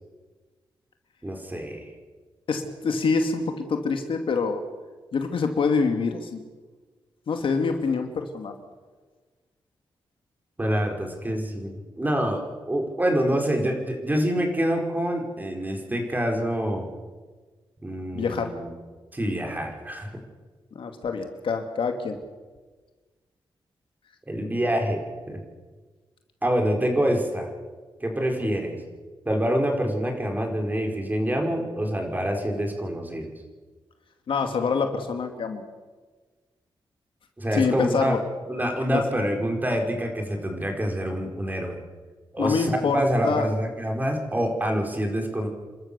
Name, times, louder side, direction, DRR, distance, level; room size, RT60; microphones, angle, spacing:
voice 1, 1.2-1.9 10.6-16.9 17.8-18.7 19.1-20.2 24.3-25.0 25.3-25.4 26.4-27.5 28.0-28.8 29.2-33.3 37.4-38.1 38.5-41.8 42.3-45.5, equal, 20° right, 2 dB, 4.7 m, -26 dB
voice 2, 2.5-4.6 5.1-6.4 7.3-8.6 18.1-18.5 20.7-22.2 34.3-35.6 37.5-38.2 38.9-39.0 42.4-43.5, left 4 dB, 70° left, 5 dB, 2.4 m, -26 dB
29.5 x 13.0 x 6.9 m, 1.4 s
cardioid pair, 80°, 9 cm